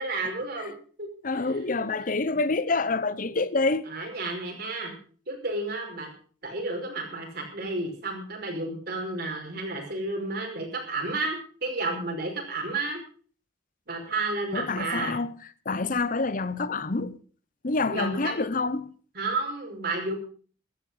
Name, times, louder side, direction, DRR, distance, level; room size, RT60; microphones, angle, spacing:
voice 1, 0.0-1.1 1.3-1.5 1.8-1.9 2.2-2.3 3.9-4.9 5.3-6.1 6.4-13.0 13.9-15.2 17.9-18.3 19.1-20.1, right 2 dB, 55° right, 5.3 m, -32 dB
voice 2, 1.2-3.9 14.5-15.3 15.6-17.2 17.6-18.9, left 3 dB, 45° left, 0.9 m, -27 dB
15.0 x 12.5 x 5.6 m
head